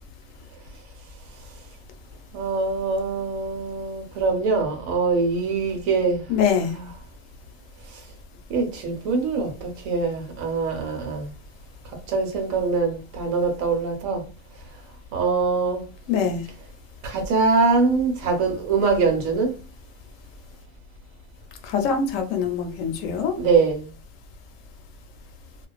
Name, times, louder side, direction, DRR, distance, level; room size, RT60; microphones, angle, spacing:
voice 1, 2.3-6.2 6.7-7.0 7.9-8.0 8.5-11.3 12.1-14.2 15.1-15.8 17.0-19.6 23.4-23.9, right 4 dB, 85° right, 1.1 m, -23 dB
voice 2, 6.3-6.7 16.1-16.4 21.7-23.4, left 6 dB, 75° left, 0.9 m, -23 dB
2.4 x 2.2 x 2.3 m
omnidirectional pair, 1.4 m